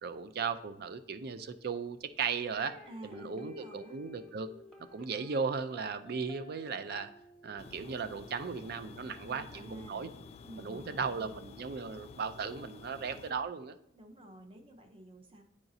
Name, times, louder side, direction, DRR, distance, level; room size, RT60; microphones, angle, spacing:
voice 1, 0.0-2.8 3.0-4.5 4.9-7.1 7.4-10.1 10.6-13.7, right 5 dB, 55° right, 11 dB, 0.4 m, -36 dB
sound 1, 2.5-9.6, left 3 dB, 5° left, 1.0 m, -55 dB
voice 2, 2.9-4.0 9.2-10.0 10.4-11.3 13.9-15.4, right 1 dB, 30° right, 4 dB, 0.7 m, -51 dB
sound 2, 7.6-13.3, left 4 dB, 35° left, 0.3 m, -51 dB
8.9 x 4.9 x 2.7 m, 0.79 s
head